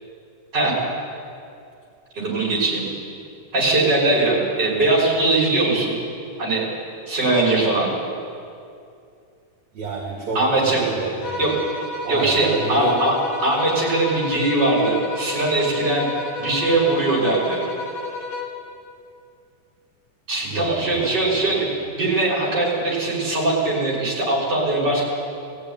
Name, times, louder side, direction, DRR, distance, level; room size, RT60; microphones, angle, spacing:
voice 1, 2.2-2.9 3.5-6.0 6.4-6.6 7.1-7.9 10.3-10.8 11.4-11.5 12.1-13.2 13.4-16.1 16.4-17.6 20.3-21.7 22.0-25.0, right 2 dB, 30° right, -4 dB, 6.2 m, -20 dB
voice 2, 9.7-11.6 12.0-13.3 20.4-21.6, right 2 dB, 60° right, -3 dB, 3.6 m, -30 dB
sound 1, 11.2-18.7, left 3 dB, 65° left, 3.1 m, -32 dB
20.0 x 14.5 x 9.8 m, 2.5 s
omnidirectional pair, 3.6 m